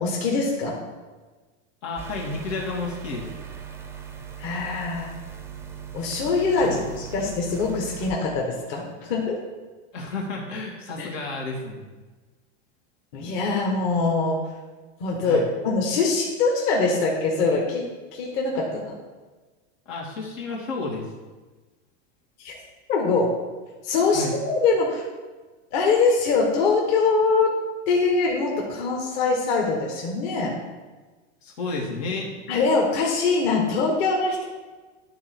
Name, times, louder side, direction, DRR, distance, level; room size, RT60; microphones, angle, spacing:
voice 1, 0.0-0.7 4.4-5.1 5.9-9.4 11.0-11.1 13.1-14.4 15.0-17.8 18.1-18.9 22.4-22.5 22.9-23.3 23.8-25.0 25.7-27.6 27.9-30.5 32.5-34.4, left 4 dB, 55° left, -1 dB, 1.6 m, -23 dB
voice 2, 1.8-3.2 6.6-6.9 9.9-11.8 15.3-15.5 19.9-21.1 24.1-24.4 31.4-32.3, left 3 dB, 85° left, -3 dB, 2.6 m, -31 dB
sound 1, 2.0-8.1, right 8 dB, 5° right, 0.4 m, -39 dB
11.5 x 4.0 x 4.5 m, 1.3 s
supercardioid pair, 145°, 37 cm